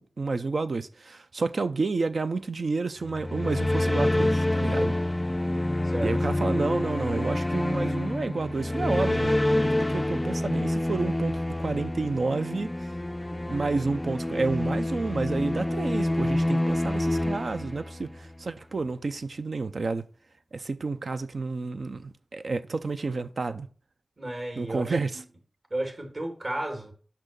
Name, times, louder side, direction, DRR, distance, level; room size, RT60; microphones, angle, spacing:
voice 1, 0.0-4.9 6.0-9.4 9.6-12.7 13.5-20.1 20.5-23.7 24.6-25.2, right 3 dB, 75° right, 0.6 m, -30 dB
sound 1, 3.0-18.3, left 1 dB, 20° left, 0.3 m, -27 dB
voice 2, 24.2-25.0 25.7-26.9, right 1 dB, 55° right, 2.5 m, -33 dB
6.1 x 5.6 x 6.7 m
wide cardioid pair, 55°, 0 cm